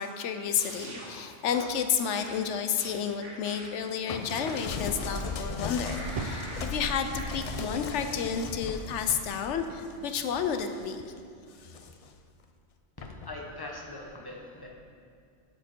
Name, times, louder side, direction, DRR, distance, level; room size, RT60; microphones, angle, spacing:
voice 1, 0.0-11.1, left 7 dB, 75° left, 7 dB, 0.9 m, -31 dB
sound 1, 0.6-1.1 1.5-1.8 2.1-3.9 4.3-5.4 5.8-6.7 7.2-7.3, right 1 dB, 80° right, 1.8 m, -44 dB
sound 2, 4.1-11.1 11.5-12.2 13.0-13.3, left 4 dB, 60° left, 0.3 m, -38 dB
Fire, 6.2-9.0 9.8-9.9, right 3 dB, 50° right, 0.4 m, -41 dB
voice 2, 13.0-14.7, left 2 dB, 20° left, -1 dB, 1.0 m, -41 dB
12.5 x 5.1 x 4.5 m, 2.3 s
omnidirectional pair, 1.2 m